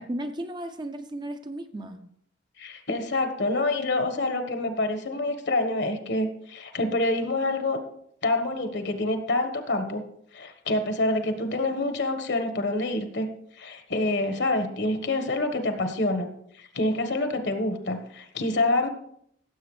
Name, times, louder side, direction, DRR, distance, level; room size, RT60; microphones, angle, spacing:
voice 1, 0.0-2.0, right 1 dB, 25° right, 7 dB, 0.6 m, -34 dB
voice 2, 2.6-7.8 8.2-10.0 10.3-13.3 13.6-16.3 16.6-18.9, left 2 dB, 65° left, 7 dB, 1.3 m, -27 dB
15.5 x 7.6 x 3.2 m, 0.70 s
head